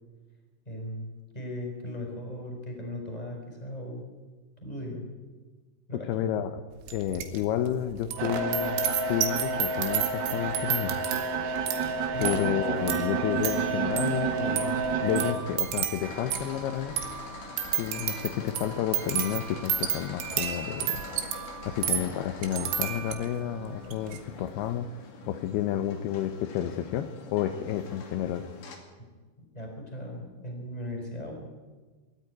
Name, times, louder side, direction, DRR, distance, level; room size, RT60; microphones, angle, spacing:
voice 1, 0.6-4.1 4.6-5.0 5.9-6.3 12.1-12.4 29.5-31.3, left 1 dB, 10° left, 1 dB, 4.6 m, -38 dB
voice 2, 6.1-6.6 6.9-8.8 9.1-11.0 12.2-17.0 17.8-21.0 21.7-24.9 25.3-28.4, left 10 dB, 75° left, 10 dB, 2.5 m, -31 dB
sound 1, 6.9-7.4 7.7-23.4 23.8-24.2, right 9 dB, 90° right, 4.1 m, -33 dB
sound 2, 8.2-15.3, right 4 dB, 70° right, 4.2 m, -29 dB
sound 3, 14.0-28.8, left 5 dB, 50° left, 3.6 m, -44 dB
22.0 x 14.0 x 9.8 m, 1.4 s
omnidirectional pair, 5.2 m